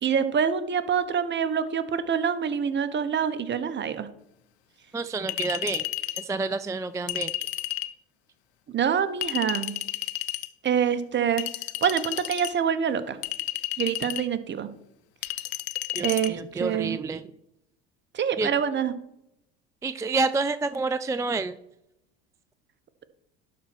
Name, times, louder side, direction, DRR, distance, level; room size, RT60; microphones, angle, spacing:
voice 1, 0.0-4.1 8.7-9.7 10.6-11.4 11.8-13.2 13.8-14.7 16.0-17.0 18.1-18.9, right 8 dB, 35° right, 11 dB, 1.1 m, -26 dB
voice 2, 4.9-5.8 6.2-7.3 15.9-17.2 18.4-18.5 19.8-21.6, right 3 dB, 10° right, 12 dB, 0.4 m, -28 dB
Chink clink, 5.3-6.3 7.1-7.9 9.2-10.5 11.4-12.5 13.2-14.3 15.2-16.3, left 16 dB, 85° left, 0.6 m, -32 dB
11.5 x 4.3 x 6.1 m, 0.82 s
hypercardioid pair, 75°, 31 cm